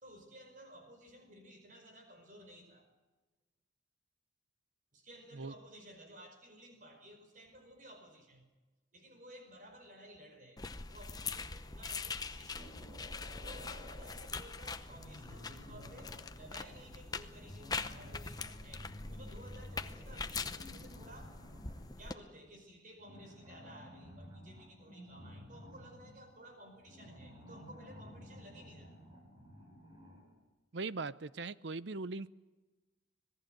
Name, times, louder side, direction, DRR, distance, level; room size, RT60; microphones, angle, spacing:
voice 1, 0.0-2.8 4.9-8.4 8.9-10.6 10.9-12.9 13.4-21.4 21.8-28.9, right 1 dB, 45° right, 5 dB, 5.1 m, -55 dB
sound 1, 10.6-22.1, left 4 dB, 20° left, 0.8 m, -43 dB
sound 2, 12.5-14.2 14.9-22.0 23.0-30.4, left 1 dB, 25° right, 5.4 m, -53 dB
voice 2, 30.7-32.3, right 3 dB, 70° right, 17 dB, 0.7 m, -40 dB
26.5 x 19.0 x 7.8 m, 1.2 s
head